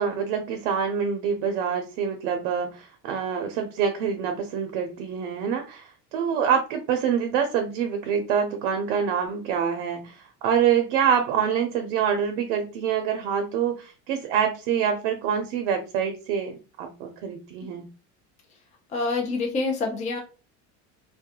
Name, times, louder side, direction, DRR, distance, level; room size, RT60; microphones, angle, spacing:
voice 1, 0.0-17.9, right 7 dB, 90° right, 6 dB, 0.6 m, -26 dB
voice 2, 18.9-20.2, left 3 dB, 20° left, 2 dB, 0.4 m, -26 dB
2.2 x 2.1 x 2.8 m, 0.33 s
cardioid pair, 165°, 36 cm